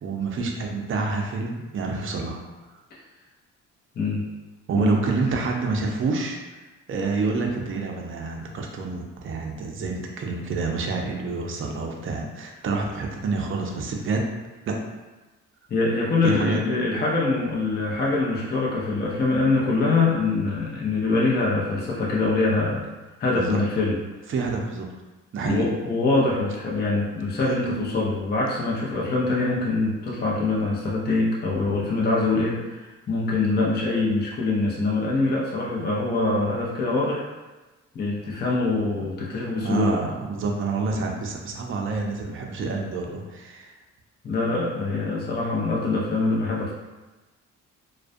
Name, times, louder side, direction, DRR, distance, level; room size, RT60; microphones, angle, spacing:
voice 1, 0.0-2.4 4.7-6.6 6.9-14.2 14.7-14.8 16.2-16.6 23.3-23.6 24.3-24.9 25.3-25.7 39.6-43.7, right 3 dB, 45° right, 1 dB, 0.5 m, -27 dB
voice 2, 15.7-22.9 23.2-24.0 25.4-37.2 37.9-40.0 44.2-46.7, left 3 dB, 35° left, -5 dB, 0.6 m, -24 dB
2.3 x 2.1 x 2.5 m, 1.2 s
cardioid pair, 90°, 30 cm